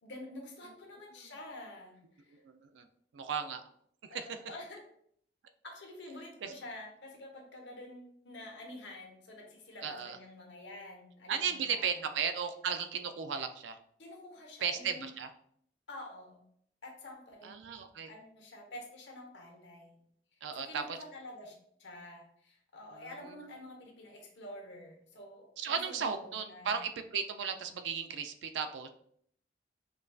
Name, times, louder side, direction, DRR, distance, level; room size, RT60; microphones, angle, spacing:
voice 1, 0.0-2.4 4.1-4.8 5.6-12.1 14.0-15.1 15.9-16.4 16.8-17.5 18.0-20.0 20.5-26.8, left 1 dB, 75° left, 1 dB, 1.0 m, -48 dB
voice 2, 2.4-2.8 3.1-3.6 4.1-4.3 6.4-6.5 9.8-10.2 11.3-13.8 14.6-15.3 17.4-18.1 20.4-21.0 25.6-28.9, right 6 dB, 80° right, 8 dB, 0.4 m, -35 dB
5.2 x 2.5 x 2.3 m, 0.65 s
head